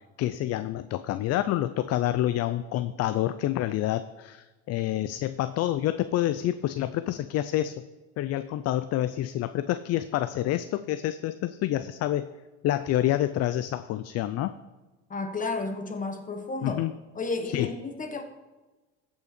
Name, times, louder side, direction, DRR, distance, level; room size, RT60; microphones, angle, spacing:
voice 1, 0.2-7.8 8.2-12.3 12.6-14.5 16.6-16.9 17.5-17.7, left 13 dB, 50° left, 12 dB, 0.5 m, -28 dB
voice 2, 15.1-16.8 17.1-18.2, left 3 dB, 25° left, 6 dB, 1.4 m, -32 dB
14.5 x 5.7 x 4.3 m, 1.2 s
supercardioid pair, 95°, 34 cm